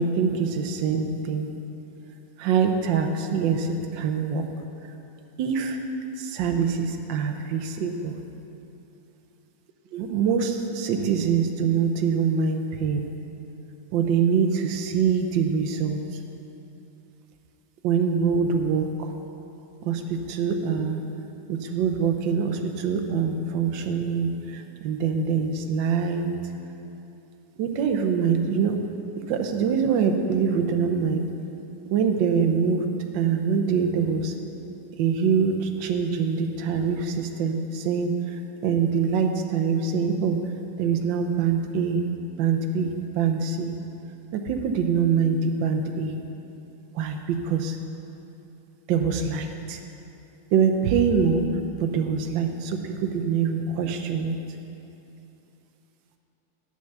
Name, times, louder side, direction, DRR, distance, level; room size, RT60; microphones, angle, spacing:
voice 1, 0.0-1.5 2.4-4.4 5.4-5.8 6.2-8.1 9.9-13.1 13.9-16.0 17.8-19.1 19.8-21.0 21.5-26.3 27.6-28.8 29.3-31.2 31.9-32.9 33.1-34.3 35.0-40.4 40.8-42.0 42.4-43.7 44.3-46.1 46.9-47.8 48.9-49.8 50.5-51.4 51.8-54.3, right 6 dB, 70° right, 5 dB, 1.4 m, -24 dB
9.3 x 7.0 x 6.6 m, 2.9 s
omnidirectional pair, 2.3 m